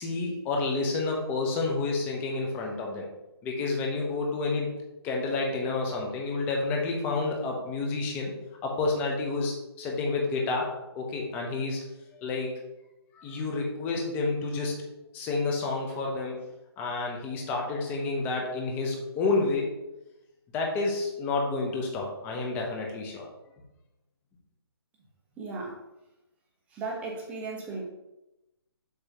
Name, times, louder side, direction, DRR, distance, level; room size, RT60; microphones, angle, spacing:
voice 1, 0.0-3.1 3.4-4.7 5.0-8.3 8.6-11.8 12.2-12.5 13.1-14.9 15.1-16.5 16.8-19.7 20.5-23.2, left 3 dB, 15° left, 0 dB, 0.9 m, -29 dB
voice 2, 25.4-25.8 26.7-27.8, right 3 dB, 10° right, -3 dB, 1.1 m, -36 dB
7.1 x 3.2 x 5.7 m, 0.95 s
hypercardioid pair, 160°, 14 cm